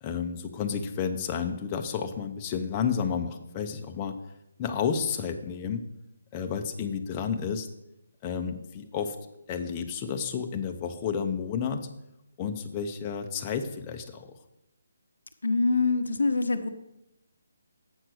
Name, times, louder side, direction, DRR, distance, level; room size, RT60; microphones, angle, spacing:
voice 1, 0.0-4.2 4.6-5.8 6.3-7.7 8.2-9.2 9.5-11.9 12.4-14.3, left 7 dB, 20° left, 5 dB, 0.7 m, -31 dB
voice 2, 15.4-16.7, left 3 dB, 80° left, 7 dB, 0.7 m, -24 dB
8.0 x 5.9 x 6.3 m, 0.87 s
hypercardioid pair, 160°, 0 cm